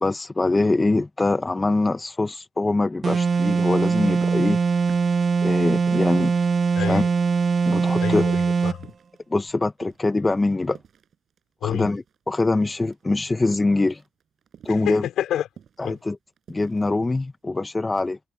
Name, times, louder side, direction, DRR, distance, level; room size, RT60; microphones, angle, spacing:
voice 1, 0.0-4.6 5.4-6.3 6.9-7.0 7.7-8.2 9.3-10.8 11.6-14.0 14.6-15.1 15.8-16.2 16.5-18.2, left 2 dB, 20° left, 0.7 m, -23 dB
sound 1, 3.0-8.8, right 5 dB, 40° right, 0.8 m, -21 dB
sound 2, 3.1-12.2 12.5-17.5, right 8 dB, 60° right, 5.7 m, -49 dB
voice 2, 6.7-7.1 8.0-8.9 11.6-11.9 14.7-15.5 15.8-16.0, left 11 dB, 75° left, 4.2 m, -28 dB
cardioid pair, 90°, 0 cm